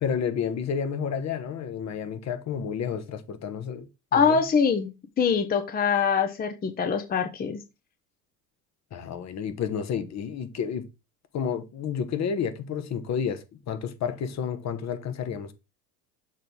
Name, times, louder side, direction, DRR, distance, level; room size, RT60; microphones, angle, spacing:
voice 1, 0.0-3.9 4.1-4.4 8.9-10.9 11.3-15.5, left 7 dB, 35° left, 1.2 m, -30 dB
voice 2, 4.1-4.9 5.2-7.6, left 6 dB, 20° left, 0.8 m, -23 dB
6.7 x 3.9 x 4.8 m
hypercardioid pair, 75°, 47 cm